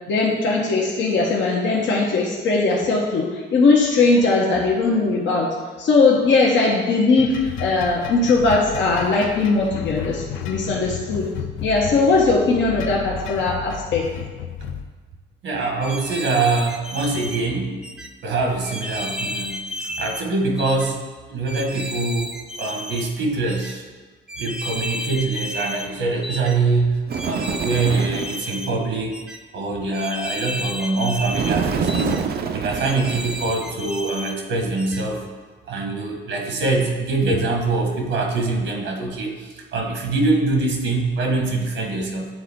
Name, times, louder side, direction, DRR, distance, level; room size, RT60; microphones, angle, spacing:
voice 1, 0.1-11.3 11.6-14.1, left 3 dB, 70° left, -3 dB, 1.0 m, -19 dB
sound 1, 7.2-14.8, left 8 dB, 85° left, 0.5 m, -33 dB
voice 2, 15.4-17.8 18.2-21.0 21.3-22.3 22.6-23.8 24.4-29.1 29.5-35.2 35.7-42.3, right 3 dB, 75° right, 1 dB, 1.3 m, -24 dB
sound 2, 15.8-17.4 17.8-18.1 18.6-20.2 20.6-20.9 21.5-23.1 23.5-23.7 24.3-25.9 26.2-26.6 27.1-28.7 29.1-29.4 29.9-31.5 31.9-32.2 32.7-34.3 34.8-35.0, left 1 dB, 5° right, 0.4 m, -32 dB
Bird, 27.1-28.5 31.3-33.8, right 6 dB, 50° right, 0.5 m, -26 dB
9.5 x 3.8 x 3.6 m, 1.4 s
cardioid pair, 90°, 20 cm